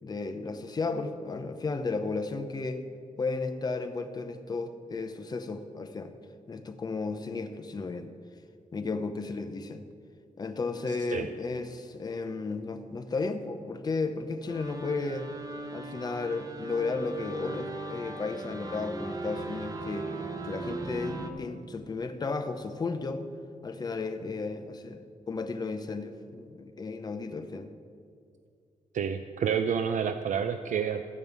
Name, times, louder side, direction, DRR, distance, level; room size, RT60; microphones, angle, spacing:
voice 1, 0.0-2.8 3.2-6.1 6.5-8.1 8.7-9.8 10.4-15.3 15.7-20.1 20.4-23.3 23.6-27.7, left 3 dB, 30° left, 8 dB, 0.7 m, -34 dB
sound 1, 14.5-21.3, right 2 dB, 25° right, 0.8 m, -38 dB
voice 2, 28.9-31.0, right 7 dB, 65° right, 8 dB, 0.4 m, -29 dB
13.5 x 5.4 x 8.1 m, 2.3 s
wide cardioid pair, 170°, 14 cm